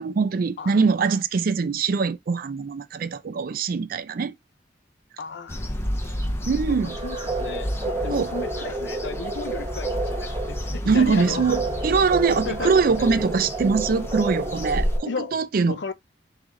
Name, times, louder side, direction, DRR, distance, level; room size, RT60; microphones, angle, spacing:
voice 1, 0.0-4.3 6.4-7.0 8.1-8.3 10.9-15.9, right 5 dB, 55° right, 0.4 m, -23 dB
voice 2, 5.2-11.6 12.4-13.2 15.1-15.4 15.6-15.9, left 4 dB, 70° left, 0.5 m, -35 dB
sound 1, 5.5-15.0, equal, 15° left, 0.6 m, -31 dB
sound 2, 6.8-15.2, right 3 dB, 25° right, 0.9 m, -31 dB
3.7 x 3.2 x 3.6 m
head